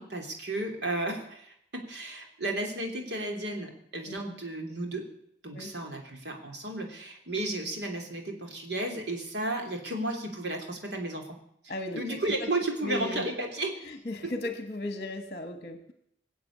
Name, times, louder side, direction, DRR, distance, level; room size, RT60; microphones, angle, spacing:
voice 1, 0.0-5.1 5.4-11.2 11.6-13.8 14.2-14.3, right 1 dB, 70° right, 2 dB, 3.2 m, -33 dB
voice 2, 11.7-12.5 12.8-13.2 13.8-15.9, left 2 dB, 40° left, 8 dB, 1.2 m, -36 dB
20.5 x 7.9 x 8.5 m, 0.72 s
head